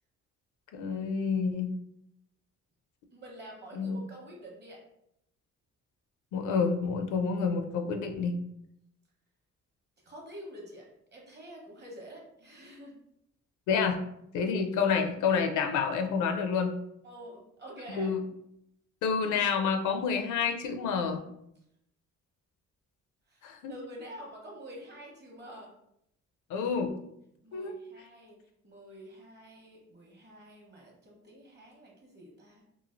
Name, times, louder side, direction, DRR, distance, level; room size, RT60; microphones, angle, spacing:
voice 1, 0.7-1.7 3.8-4.0 6.3-8.3 13.7-14.0 14.3-16.7 17.9-18.2 19.0-21.2 23.4-23.7 26.5-26.9 27.5-27.7, left 6 dB, 80° left, 5 dB, 0.5 m, -28 dB
voice 2, 3.1-4.8 10.0-13.0 17.0-18.1 23.3-25.7 27.4-28.4 28.6-32.6, equal, 35° right, -1 dB, 1.1 m, -48 dB
3.0 x 2.4 x 2.5 m, 0.77 s
cardioid pair, 90°, 30 cm